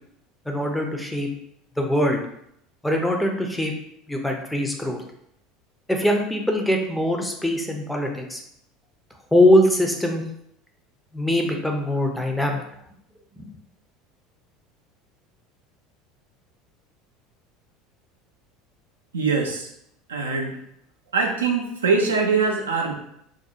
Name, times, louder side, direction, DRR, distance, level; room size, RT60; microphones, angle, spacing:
voice 1, 0.5-1.3 1.8-2.2 2.8-3.7 4.1-5.0 5.9-8.4 9.3-10.2 11.1-12.6 13.4-13.5, left 1 dB, 5° left, 2 dB, 0.5 m, -22 dB
voice 2, 19.1-19.7 20.1-20.6 21.1-22.9, right 4 dB, 85° right, 1 dB, 0.3 m, -22 dB
2.4 x 2.0 x 2.8 m, 0.73 s
hypercardioid pair, 75°, 0 cm